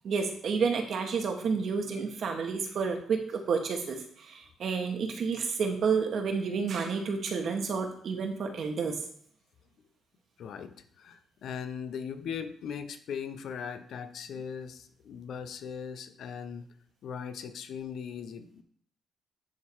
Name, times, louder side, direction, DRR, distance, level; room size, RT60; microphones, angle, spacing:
voice 1, 0.0-9.0, right 5 dB, 60° right, 4 dB, 1.5 m, -30 dB
voice 2, 10.4-16.7 17.0-18.6, left 7 dB, 70° left, 10 dB, 0.8 m, -39 dB
10.5 x 3.8 x 4.7 m, 0.63 s
cardioid pair, 90°, 0 cm